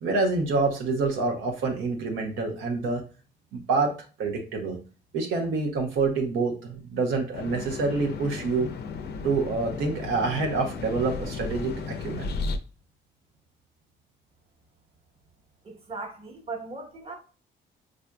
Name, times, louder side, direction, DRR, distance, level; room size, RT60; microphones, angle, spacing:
voice 1, 0.0-3.0 3.5-4.8 5.1-8.7 9.2-12.3, right 3 dB, 85° right, 0.8 m, -27 dB
sound 1, 7.3-12.6, left 4 dB, 55° left, 0.5 m, -34 dB
voice 2, 15.6-17.1, right 3 dB, 30° right, 1.1 m, -38 dB
4.9 x 2.5 x 2.2 m
cardioid pair, 90°, 20 cm